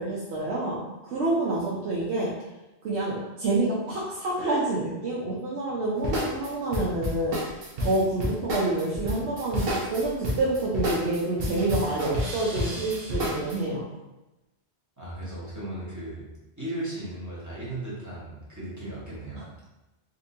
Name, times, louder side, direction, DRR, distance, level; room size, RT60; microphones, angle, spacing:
voice 1, 0.0-2.3 2.8-13.9 19.4-19.5, right 2 dB, 85° right, -6 dB, 1.0 m, -28 dB
sound 1, 6.0-13.6, left 1 dB, 60° right, 1.0 m, -30 dB
voice 2, 15.0-16.2 16.6-19.4, right 1 dB, 15° right, -8 dB, 1.1 m, -36 dB
4.1 x 2.6 x 2.6 m, 1.0 s
omnidirectional pair, 1.1 m